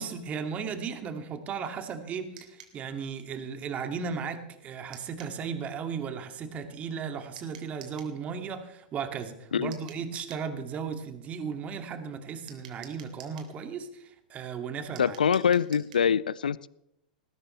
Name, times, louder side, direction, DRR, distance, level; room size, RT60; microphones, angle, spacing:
voice 1, 0.0-15.2, right 6 dB, 30° right, 6 dB, 2.4 m, -36 dB
sound 1, 2.4-2.8 4.9-5.4 7.4-8.2 9.7-10.5 12.5-13.5 15.0-16.1, right 8 dB, 70° right, 3.2 m, -50 dB
voice 2, 15.0-16.7, left 7 dB, 80° left, 21 dB, 0.4 m, -24 dB
20.0 x 16.5 x 3.3 m, 0.85 s
hypercardioid pair, 100°, 5 cm